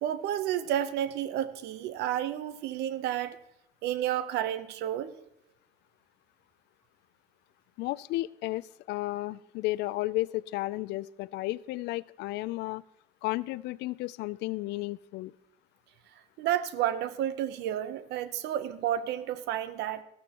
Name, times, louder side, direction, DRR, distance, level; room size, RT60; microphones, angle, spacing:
voice 1, 0.0-3.4 3.8-5.1 16.4-20.0, right 11 dB, 80° right, 0.8 m, -31 dB
voice 2, 7.8-12.8 13.2-15.3, left 18 dB, 80° left, 0.4 m, -33 dB
14.5 x 13.0 x 2.9 m
cardioid pair, 110°, 17 cm